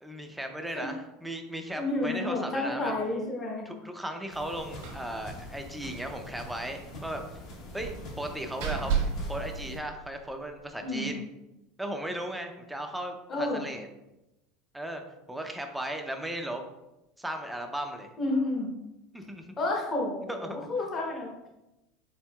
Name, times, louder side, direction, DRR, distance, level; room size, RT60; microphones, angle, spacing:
voice 1, 0.0-2.9 3.7-7.2 7.7-7.9 8.2-8.9 9.3-11.2 11.8-13.9 14.7-15.0 15.3-16.6 17.2-18.1 19.1-19.5 20.3-20.6, right 1 dB, 5° right, 4 dB, 0.4 m, -36 dB
voice 2, 1.8-3.7 10.8-11.1 13.3-13.6 18.2-18.7 19.6-21.5, left 2 dB, 25° left, -1 dB, 0.8 m, -30 dB
sound 1, 4.3-9.8, left 1 dB, 55° left, 1.0 m, -44 dB
Slam, 4.8-5.1 5.4-5.5 5.9-6.0 7.8-10.4, right 6 dB, 85° right, 1.1 m, -33 dB
4.4 x 3.8 x 2.2 m, 0.94 s
supercardioid pair, 140°, 0 cm